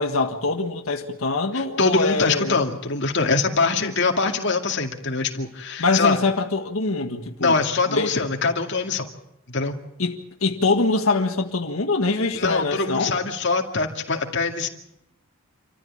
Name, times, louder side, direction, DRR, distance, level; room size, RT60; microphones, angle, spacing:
voice 1, 0.0-2.6 3.8-3.9 5.8-7.5 7.9-8.1 10.0-13.1, left 3 dB, 85° left, 1.7 m, -24 dB
voice 2, 1.5-6.2 7.4-9.1 9.5-9.8 12.3-14.7, left 4 dB, 55° left, 2.3 m, -23 dB
27.0 x 14.5 x 8.8 m
head